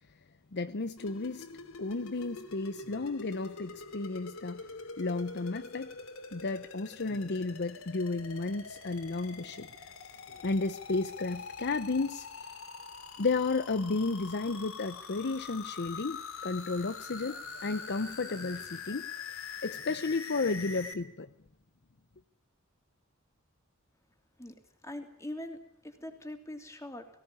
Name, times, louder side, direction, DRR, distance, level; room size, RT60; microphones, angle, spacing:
voice 1, 0.5-1.5 1.8-4.6 5.0-5.9 6.3-9.7 10.4-12.3 13.2-19.1 19.6-21.3, left 3 dB, 55° left, 0.7 m, -33 dB
sound 1, 1.0-20.9, left 4 dB, 75° left, 2.7 m, -44 dB
voice 2, 24.8-27.1, left 1 dB, 15° left, 3.0 m, -42 dB
18.5 x 17.0 x 9.6 m
head